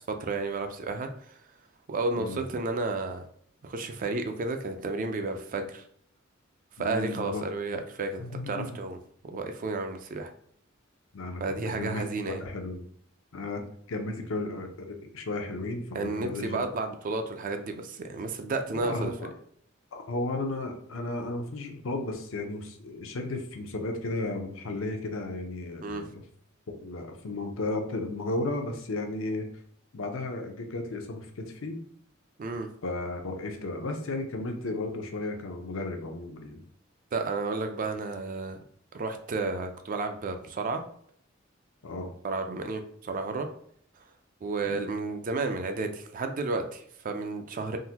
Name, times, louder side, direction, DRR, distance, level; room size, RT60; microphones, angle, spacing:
voice 1, 0.1-1.4 1.9-3.3 3.6-5.8 6.8-9.0 9.2-10.3 11.4-12.4 15.9-19.3 25.8-26.0 32.4-32.7 37.1-38.6 38.9-40.8 42.2-43.5 44.4-47.8, right 3 dB, 40° right, 7 dB, 0.4 m, -32 dB
voice 2, 6.8-7.4 8.2-8.8 11.1-11.4 11.8-12.8 13.3-13.6 13.9-15.9 16.2-16.6 18.7-19.3 19.9-26.2 26.7-29.5 29.9-31.8 32.8-36.6 41.8-42.1 44.7-44.9, left 2 dB, 75° left, 4 dB, 0.6 m, -34 dB
3.7 x 2.1 x 2.8 m, 0.64 s
head